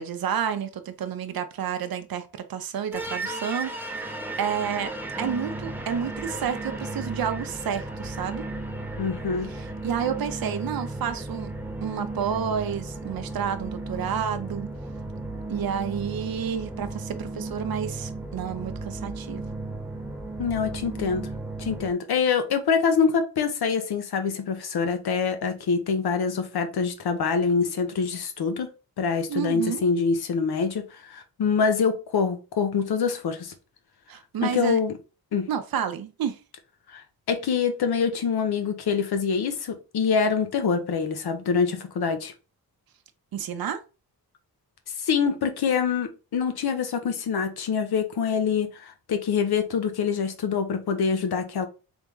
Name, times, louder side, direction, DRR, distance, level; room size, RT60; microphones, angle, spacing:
voice 1, 0.0-4.9 5.2-8.4 9.5-11.5 11.8-14.7 15.5-19.4 29.3-29.8 34.1-34.8 35.5-36.4 43.3-43.8, right 8 dB, 65° right, 0.6 m, -30 dB
sound 1, 2.9-21.9, right 2 dB, 5° right, 0.5 m, -35 dB
voice 2, 9.0-9.5 20.4-21.3 21.6-28.7 29.0-33.5 34.4-34.9 35.3-35.5 36.9-42.3 45.0-51.7, left 5 dB, 80° left, 0.8 m, -25 dB
3.6 x 3.5 x 3.0 m
wide cardioid pair, 140°, 38 cm